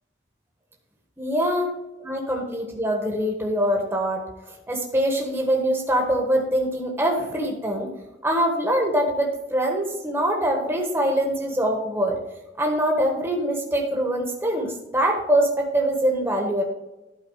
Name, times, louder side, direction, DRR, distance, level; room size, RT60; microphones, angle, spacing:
voice 1, 1.2-1.7 2.0-4.2 4.7-7.9 8.2-12.2 12.6-16.6, right 1 dB, 10° right, 0 dB, 1.4 m, -23 dB
11.5 x 4.6 x 4.8 m, 1.0 s
head